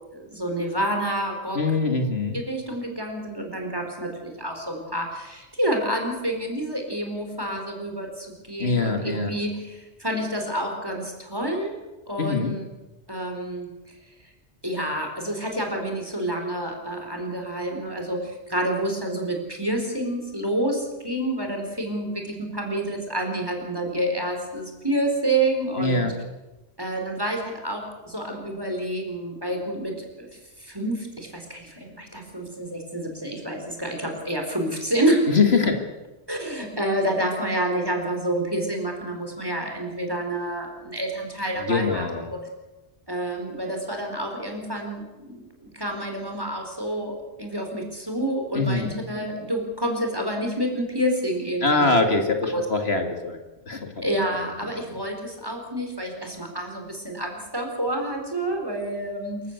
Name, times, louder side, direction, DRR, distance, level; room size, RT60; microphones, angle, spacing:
voice 1, 0.1-1.6 2.3-11.7 12.1-12.7 13.1-13.7 14.6-26.1 26.8-30.3 30.6-35.7 36.3-42.4 43.1-52.0 52.5-52.7 54.0-59.4, right 1 dB, 20° right, 3 dB, 4.6 m, -28 dB
voice 2, 1.5-2.4 8.6-9.3 12.2-12.5 25.8-26.1 35.3-35.8 41.6-42.3 48.5-48.9 51.6-53.4 53.7-54.0, left 3 dB, 65° left, 5 dB, 2.6 m, -23 dB
27.0 x 15.0 x 8.2 m, 1.1 s
omnidirectional pair, 1.1 m